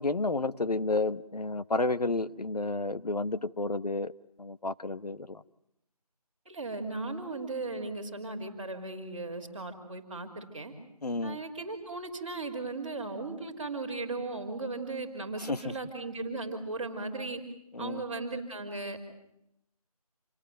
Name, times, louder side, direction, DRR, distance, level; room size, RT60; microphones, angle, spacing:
voice 1, 0.0-4.1 4.4-5.4 11.0-11.4 15.4-15.7 17.7-18.0, left 3 dB, 85° left, 1.1 m, -31 dB
voice 2, 6.5-10.7 11.2-17.4 17.8-19.0, right 3 dB, 15° right, 3.6 m, -37 dB
27.0 x 18.5 x 9.2 m
figure-of-eight pair, 175°, 20 cm